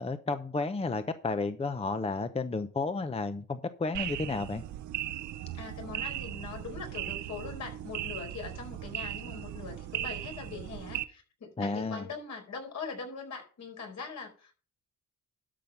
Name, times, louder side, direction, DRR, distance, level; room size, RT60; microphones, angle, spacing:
voice 1, 0.0-4.6 11.6-12.1, left 3 dB, 20° left, 10 dB, 0.8 m, -32 dB
sound 1, 3.9-11.0, right 13 dB, 75° right, 0.9 m, -38 dB
voice 2, 5.6-14.5, left 5 dB, 65° left, 3 dB, 4.7 m, -42 dB
12.5 x 5.6 x 5.3 m, 0.39 s
cardioid pair, 90°, 30 cm